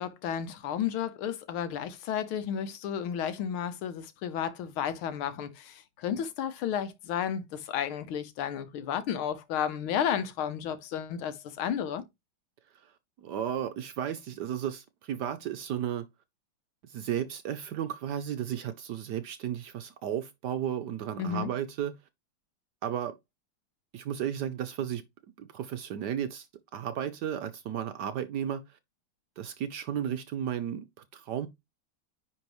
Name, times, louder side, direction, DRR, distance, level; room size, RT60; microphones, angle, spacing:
voice 1, 0.0-12.0 21.2-21.5, left 9 dB, 80° left, 1.7 m, -32 dB
voice 2, 13.2-16.0 16.8-21.9 22.8-23.2 23.9-25.0 25.4-26.5 26.7-28.6 29.4-30.9 31.1-31.5, right 9 dB, 70° right, 1.0 m, -34 dB
9.9 x 3.9 x 3.1 m
omnidirectional pair, 2.3 m